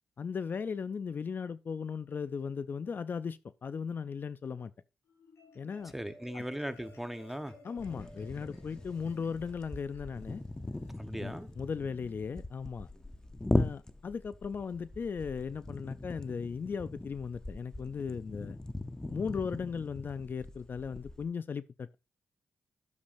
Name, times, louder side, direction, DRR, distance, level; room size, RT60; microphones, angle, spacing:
voice 1, 0.2-4.7 5.6-5.9 6.3-6.4 7.6-10.4 11.2-12.9 13.5-18.6 19.1-22.0, left 6 dB, 50° left, 0.4 m, -37 dB
Marimba xylophone, 5.1-11.7, left 2 dB, 80° left, 4.4 m, -58 dB
voice 2, 5.9-7.5 10.9-11.5, equal, 5° right, 1.0 m, -38 dB
sound 1, 7.8-21.2, left 2 dB, 15° left, 0.7 m, -39 dB
11.5 x 7.1 x 2.6 m
cardioid pair, 75°, 5 cm